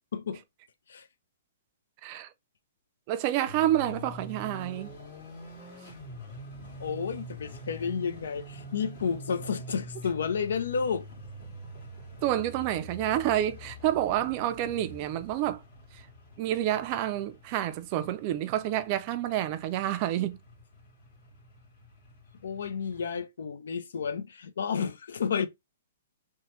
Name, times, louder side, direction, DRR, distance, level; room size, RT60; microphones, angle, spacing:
voice 1, 0.1-0.4 0.9-1.1 5.8-5.9 6.8-11.1 22.4-25.5, left 6 dB, 80° left, 0.4 m, -31 dB
voice 2, 3.1-4.9 12.2-15.6 15.9-16.0 16.4-20.4, right 12 dB, 35° right, 0.3 m, -29 dB
sound 1, 3.4-23.0, equal, 50° left, 1.5 m, -45 dB
3.0 x 2.1 x 3.0 m
hypercardioid pair, 150°, 0 cm